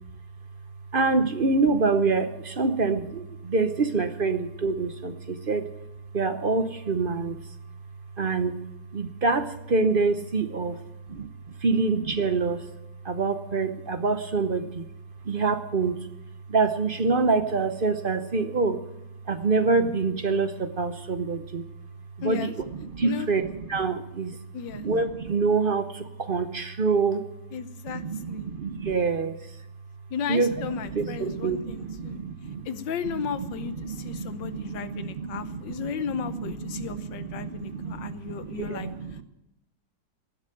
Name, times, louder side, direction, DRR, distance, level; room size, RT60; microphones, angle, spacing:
voice 1, 0.9-5.7 6.1-7.4 8.2-8.6 8.9-10.8 11.1-11.3 11.6-12.7 13.0-14.8 15.2-16.0 16.5-18.8 19.3-21.6 22.2-24.3 24.7-27.2 27.9-29.5 30.3-32.6 33.0-39.2, right 4 dB, 45° right, 10 dB, 0.7 m, -26 dB
voice 2, 22.2-22.5 23.0-23.3 24.5-24.9 27.5-28.5 30.1-32.2 32.6-38.9, left 7 dB, 80° left, 12 dB, 1.6 m, -35 dB
18.5 x 7.3 x 9.2 m, 0.87 s
omnidirectional pair, 2.0 m